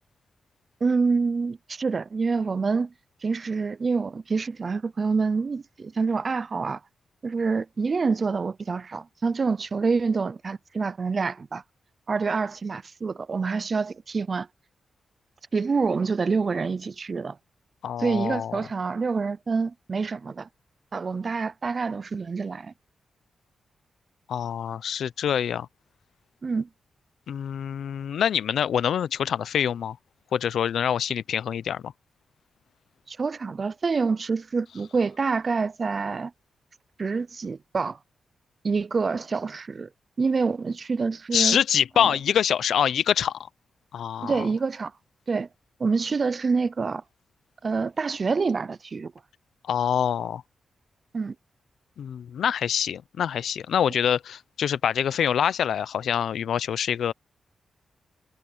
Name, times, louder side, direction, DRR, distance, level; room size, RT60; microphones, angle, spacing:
voice 1, 0.8-2.9 3.2-6.8 7.2-11.6 12.1-14.5 15.5-17.4 18.0-20.5 20.9-22.7 26.4-26.7 33.1-36.3 37.0-38.0 38.6-39.9 40.2-41.6 42.0-42.1 44.2-44.9 45.3-45.5 45.8-47.0 47.6-49.1 51.1-51.3, right 4 dB, 40° right, 0.5 m, -26 dB
voice 2, 17.8-18.6 24.3-25.7 27.3-30.0 30.3-31.9 41.3-43.4 43.9-44.4 49.7-50.4 52.0-57.1, left 9 dB, 85° left, 0.6 m, -25 dB
wide cardioid pair, 130°, 0 cm